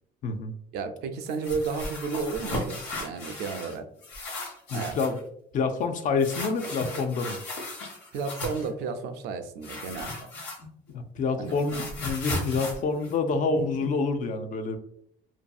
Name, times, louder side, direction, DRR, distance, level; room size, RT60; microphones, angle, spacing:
voice 1, 0.2-0.5 4.7-5.2 5.5-7.4 10.9-14.8, left 4 dB, 50° left, 7 dB, 0.4 m, -27 dB
voice 2, 0.7-3.9 4.7-5.0 8.1-10.1 11.4-11.6, right 5 dB, 80° right, 8 dB, 0.4 m, -32 dB
sound 1, 1.3-3.8 4.0-5.2 6.2-8.7 9.6-10.9 11.2-13.9, left 2 dB, 85° left, 1.0 m, -36 dB
2.6 x 2.6 x 2.3 m, 0.69 s
cardioid pair, 110°, 17 cm